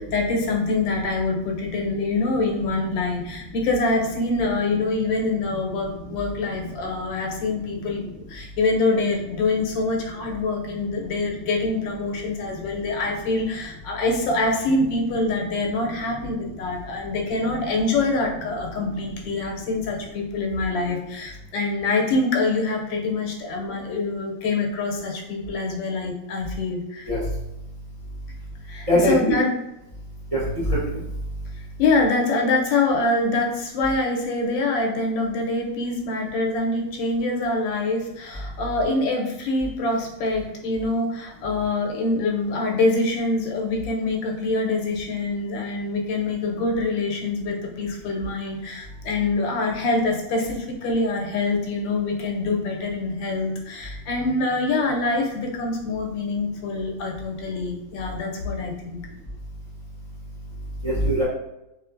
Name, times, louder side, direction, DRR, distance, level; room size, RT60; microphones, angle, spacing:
voice 1, 0.0-27.1 28.7-29.5 31.8-59.0, left 3 dB, 90° left, 1 dB, 1.4 m, -25 dB
voice 2, 28.9-29.4 30.3-31.0 60.8-61.2, equal, 30° right, -8 dB, 0.6 m, -21 dB
3.2 x 3.1 x 2.5 m, 0.89 s
omnidirectional pair, 2.0 m